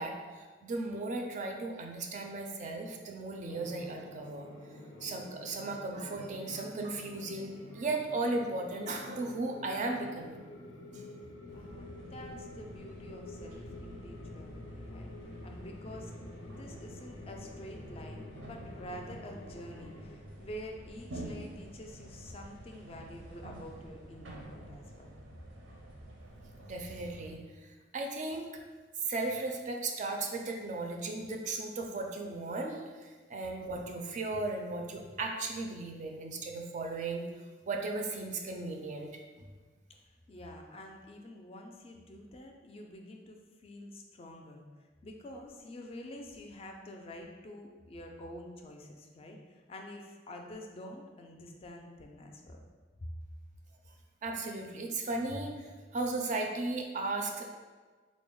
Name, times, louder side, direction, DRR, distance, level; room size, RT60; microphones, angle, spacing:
voice 1, 0.0-4.5 5.0-10.4 26.7-28.5 29.1-37.3 37.7-39.2 54.2-57.4, right 2 dB, 40° right, 2 dB, 0.4 m, -36 dB
sound 1, 3.4-20.2, left 2 dB, 90° left, 0.5 m, -49 dB
voice 2, 11.5-15.1 15.4-16.1 16.5-25.1 40.3-44.6 45.0-52.6, left 1 dB, 35° left, 2 dB, 0.3 m, -48 dB
sound 2, 11.5-27.4, right 1 dB, 85° right, 0.6 m, -49 dB
3.5 x 2.0 x 3.8 m, 1.4 s
head